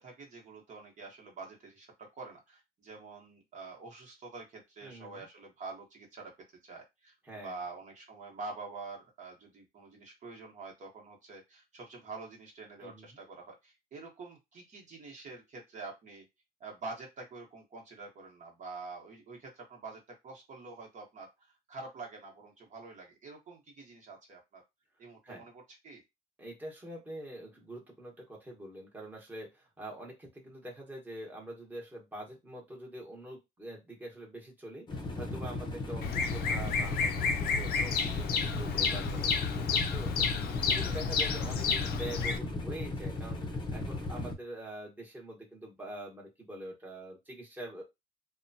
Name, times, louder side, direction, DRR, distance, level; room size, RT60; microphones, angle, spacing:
voice 1, 0.0-6.3 6.6-7.1 7.4-16.2 16.6-24.6 25.0-26.0 35.9-36.0 41.3-41.4, right 3 dB, 45° right, 0 dB, 1.1 m, -46 dB
voice 2, 4.8-5.3 7.2-7.6 12.8-13.2 25.2-25.4 26.4-47.8, right 1 dB, 10° right, -2 dB, 1.1 m, -45 dB
sound 1, 34.9-44.3, left 2 dB, 25° left, 0.7 m, -37 dB
Bird vocalization bird call bird song, 36.0-42.4, left 5 dB, 65° left, 0.5 m, -31 dB
3.0 x 2.2 x 2.6 m, 0.21 s
cardioid pair, 110°, 17 cm